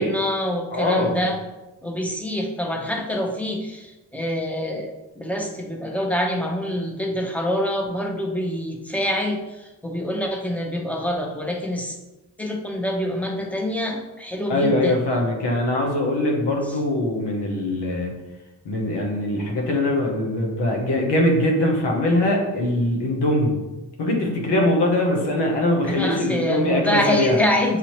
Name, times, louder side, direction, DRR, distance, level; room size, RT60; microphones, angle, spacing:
voice 1, 0.0-1.4 1.8-12.0 12.4-15.0 25.9-27.8, equal, 5° left, 1 dB, 0.9 m, -26 dB
voice 2, 0.7-1.2 14.5-18.1 18.6-23.5 24.0-27.4, left 1 dB, 85° left, 0 dB, 1.0 m, -22 dB
6.2 x 2.7 x 3.0 m, 1.1 s
cardioid pair, 50°, 40 cm